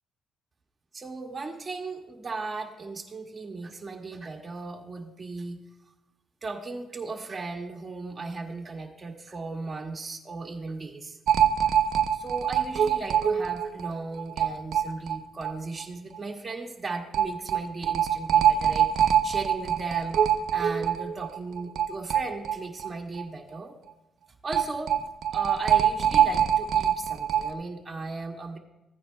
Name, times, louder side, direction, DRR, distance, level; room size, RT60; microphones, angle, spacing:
voice 1, 0.9-5.6 6.4-11.2 12.1-23.7 24.4-28.6, right 3 dB, 30° right, -1 dB, 1.8 m, -36 dB
sound 1, 11.3-15.5 15.8-15.9 16.1-16.2 17.1-22.9 23.2-23.3 24.5-27.5, right 9 dB, 70° right, 0.6 m, -24 dB
15.0 x 9.2 x 2.2 m, 0.98 s
cardioid pair, 90°, 0 cm